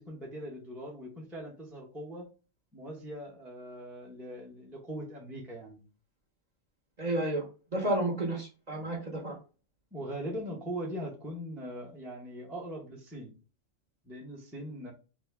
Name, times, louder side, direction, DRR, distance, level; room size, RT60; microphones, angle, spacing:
voice 1, 0.0-2.3 2.7-5.8 9.9-13.3 14.0-14.9, equal, ahead, -3 dB, 0.5 m, -41 dB
voice 2, 7.0-7.4 7.7-9.3, right 1 dB, 40° right, -2 dB, 0.7 m, -31 dB
2.8 x 2.7 x 3.3 m, 0.35 s
omnidirectional pair, 1.4 m